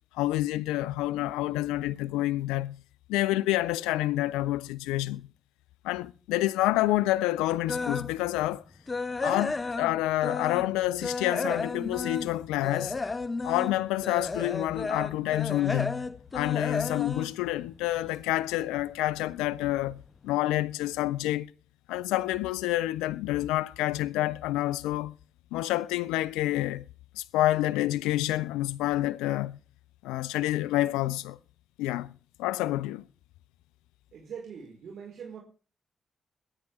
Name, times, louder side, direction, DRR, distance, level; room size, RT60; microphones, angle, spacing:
voice 1, 0.1-2.8 3.1-5.3 5.8-8.6 9.2-13.0 13.4-16.1 16.3-21.5 21.9-25.1 25.5-26.9 27.2-29.6 30.0-31.4 31.8-32.1 32.4-33.0, left 16 dB, 85° left, 0.5 m, -28 dB
sound 1, 7.7-8.1 8.5-10.7 11.0-18.2 18.6-18.8 19.3-19.4 19.8-19.9, left 3 dB, 35° left, 1.1 m, -33 dB
voice 2, 34.1-35.4, right 7 dB, 70° right, 4.8 m, -42 dB
22.0 x 10.0 x 3.6 m
hypercardioid pair, 40°, 0 cm